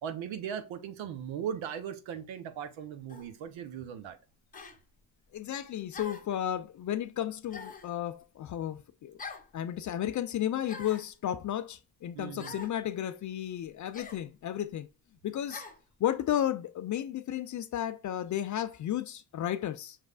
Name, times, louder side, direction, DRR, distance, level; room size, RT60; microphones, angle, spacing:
voice 1, 0.0-4.2 12.1-12.5, right 8 dB, 65° right, 0.9 m, -38 dB
sound 1, 3.1-3.3 4.5-4.8 5.9-6.4 7.5-7.9 9.2-9.5 10.6-11.1 12.4-12.8 13.9-14.2 15.5-15.8, left 4 dB, 15° left, 0.8 m, -44 dB
voice 2, 5.3-9.2 9.5-14.9 15.2-15.6 16.0-20.0, left 11 dB, 40° left, 0.4 m, -33 dB
5.9 x 3.1 x 2.4 m
supercardioid pair, 60°, 49 cm